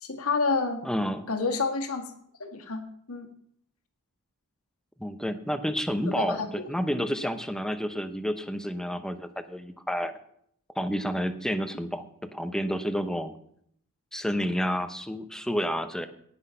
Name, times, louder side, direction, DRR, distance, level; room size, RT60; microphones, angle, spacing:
voice 1, 0.0-0.8 1.3-2.1 2.4-2.8 3.1-3.3 6.0-6.5, left 4 dB, 70° left, 5 dB, 1.8 m, -28 dB
voice 2, 0.8-1.3 5.0-10.1 10.8-13.3 14.1-16.1, equal, 5° left, 10 dB, 0.8 m, -30 dB
18.0 x 6.1 x 5.6 m, 0.68 s
head